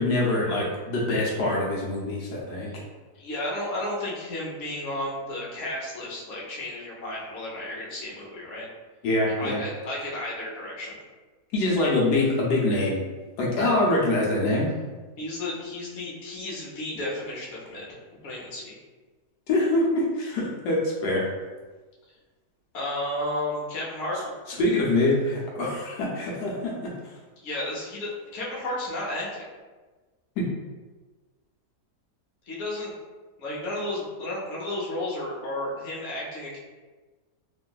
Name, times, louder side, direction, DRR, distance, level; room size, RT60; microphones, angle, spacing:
voice 1, 0.0-2.7 9.0-9.6 11.5-13.0 13.4-14.7 19.5-21.2 24.6-26.9 30.4-30.5, left 2 dB, 85° left, -4 dB, 1.3 m, -24 dB
voice 2, 3.1-8.7 9.3-11.0 15.2-17.9 18.2-18.8 22.7-24.2 27.4-29.4 32.5-32.9 33.4-36.6, left 1 dB, 55° left, -4 dB, 0.9 m, -33 dB
3.0 x 2.5 x 2.3 m, 1.3 s
omnidirectional pair, 1.8 m